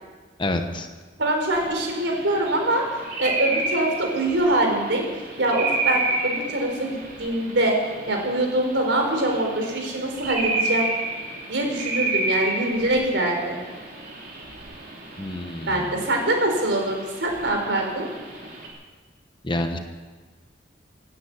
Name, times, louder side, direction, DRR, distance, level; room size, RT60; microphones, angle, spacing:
voice 1, 0.4-0.9 15.2-16.0 19.4-19.8, left 1 dB, 25° left, 6 dB, 1.3 m, -28 dB
voice 2, 1.2-2.8 3.2-5.1 5.4-7.8 8.1-10.9 11.5-13.6 15.7-18.1, right 1 dB, 80° right, 2 dB, 4.1 m, -24 dB
sound 1, 1.5-18.7, right 2 dB, 55° right, 3.4 m, -31 dB
17.0 x 9.5 x 8.4 m, 1.4 s
head